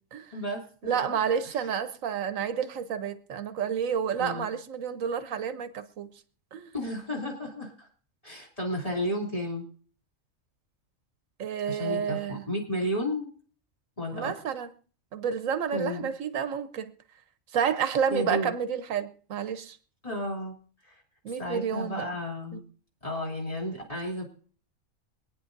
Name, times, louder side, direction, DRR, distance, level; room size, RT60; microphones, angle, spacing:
voice 1, 0.3-1.2 1.4-1.7 4.2-4.4 6.7-7.9 8.2-9.6 11.7-13.3 14.0-14.3 15.7-16.1 18.1-18.5 20.0-20.5 20.8-21.0 21.4-22.6 23.0-24.2, left 1 dB, 25° left, 3.3 m, -33 dB
voice 2, 0.8-6.1 6.5-6.7 11.4-12.5 14.1-14.7 15.1-16.9 17.5-19.8 21.2-22.1 22.5-22.6, right 7 dB, 85° right, 1.3 m, -30 dB
24.5 x 9.6 x 2.6 m
omnidirectional pair, 1.3 m